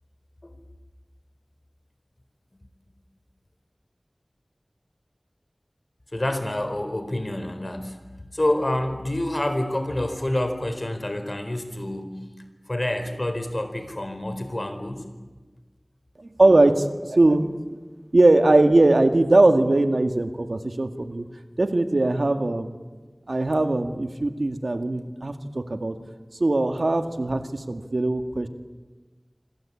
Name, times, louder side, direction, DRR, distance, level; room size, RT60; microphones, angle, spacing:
voice 1, 6.1-8.0 8.3-12.2 12.7-15.0, left 1 dB, 45° left, 8 dB, 4.1 m, -27 dB
voice 2, 16.2-17.6 18.1-21.3 21.6-22.8 23.3-26.0 26.4-28.5, right 2 dB, 80° right, 7 dB, 1.9 m, -20 dB
26.0 x 25.5 x 8.6 m, 1.3 s
wide cardioid pair, 45°, 0 cm